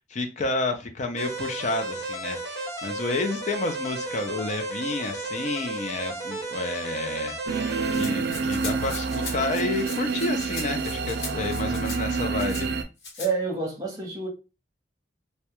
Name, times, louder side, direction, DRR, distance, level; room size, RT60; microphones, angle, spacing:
voice 1, 0.0-7.4 7.7-12.7, left 2 dB, 40° left, 0.4 m, -30 dB
sound 1, 1.2-8.0, right 2 dB, 20° left, 1.1 m, -33 dB
sound 2, 7.5-12.8, right 4 dB, 60° right, 0.3 m, -28 dB
Rattle (instrument), 7.9-12.6 13.0-13.3, left 3 dB, 70° left, 0.9 m, -39 dB
voice 2, 13.2-14.3, right 4 dB, 20° right, 0.9 m, -28 dB
2.3 x 2.1 x 2.8 m
head